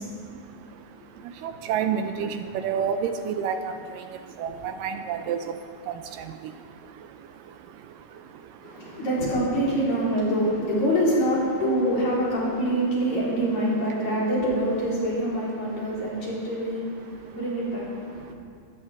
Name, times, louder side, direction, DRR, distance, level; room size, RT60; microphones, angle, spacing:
voice 1, 0.1-9.1 13.9-14.1 15.6-16.3 16.7-17.7 18.0-18.3, right 7 dB, 80° right, 8 dB, 2.2 m, -33 dB
voice 2, 8.6-18.4, equal, 50° left, -7 dB, 5.4 m, -25 dB
24.5 x 14.0 x 3.6 m, 2.3 s
omnidirectional pair, 4.1 m